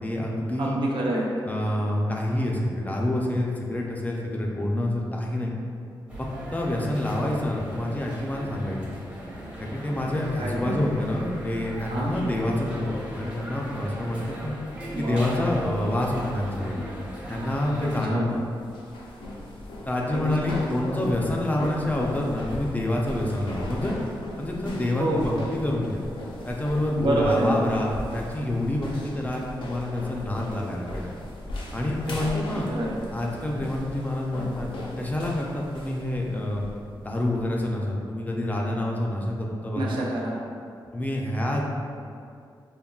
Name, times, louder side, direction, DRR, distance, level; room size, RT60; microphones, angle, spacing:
voice 1, 0.0-0.8 1.5-5.5 6.2-8.9 9.6-14.5 15.0-16.8 17.3-18.2 19.9-23.9 24.4-26.0 26.5-31.1 31.7-32.7 33.1-34.7 35.0-36.6 37.0-40.0 40.9-41.7, left 1 dB, 20° left, -1 dB, 0.4 m, -27 dB
voice 2, 0.6-1.3 10.4-10.8 11.9-12.1 14.9-15.2 17.8-18.3 20.1-20.6 25.0-25.3 27.0-27.6 32.2-32.3 32.7-33.0 39.7-40.4, right 1 dB, 75° right, -3 dB, 0.5 m, -27 dB
sound 1, 6.1-18.0, equal, 15° right, 0.8 m, -38 dB
sound 2, 18.2-37.5, left 1 dB, 80° left, 0.5 m, -38 dB
3.5 x 2.2 x 2.3 m, 2.4 s
cardioid pair, 80°, 9 cm